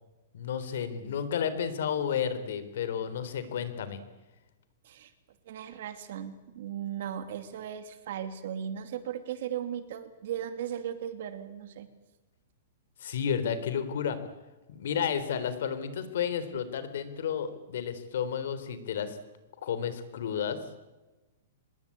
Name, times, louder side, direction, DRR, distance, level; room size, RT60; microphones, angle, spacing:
voice 1, 0.3-4.0 13.0-14.2 14.7-19.2 19.6-20.6, left 8 dB, 60° left, 12 dB, 3.6 m, -32 dB
voice 2, 5.5-11.9, right 9 dB, 50° right, 10 dB, 2.7 m, -37 dB
25.5 x 21.0 x 8.6 m, 1.1 s
hypercardioid pair, 175°, 0 cm